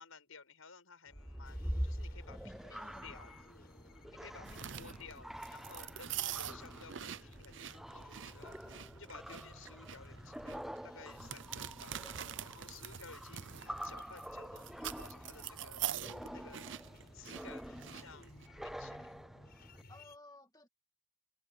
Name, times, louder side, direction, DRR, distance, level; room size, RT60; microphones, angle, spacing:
voice 1, 0.0-3.3 4.1-8.6 8.9-12.0 12.4-15.8 16.3-16.7 17.1-18.4 18.6-19.1, left 5 dB, 90° left, 6.6 m, -55 dB
sound 1, 1.1-19.8, equal, ahead, 0.4 m, -46 dB
sound 2, 1.4-20.2, left 1 dB, 50° left, 6.3 m, -58 dB
voice 2, 2.7-3.3 4.4-5.0 9.3-9.4 19.9-20.7, left 2 dB, 20° left, 2.1 m, -57 dB
sound 3, 4.4-18.5, right 10 dB, 60° right, 0.7 m, -44 dB
head